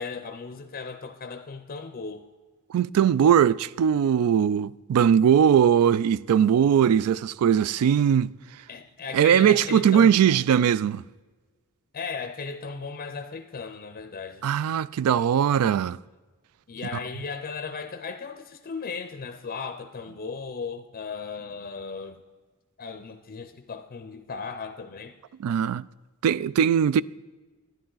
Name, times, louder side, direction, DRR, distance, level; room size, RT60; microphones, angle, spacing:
voice 1, 0.0-2.3 8.7-10.4 11.9-14.5 16.7-22.2 22.8-25.2, left 5 dB, 40° left, 0.5 m, -36 dB
voice 2, 2.7-8.3 9.1-11.0 14.4-16.0 25.4-25.8 26.2-27.0, right 8 dB, 75° right, 0.3 m, -20 dB
11.0 x 10.5 x 3.9 m
head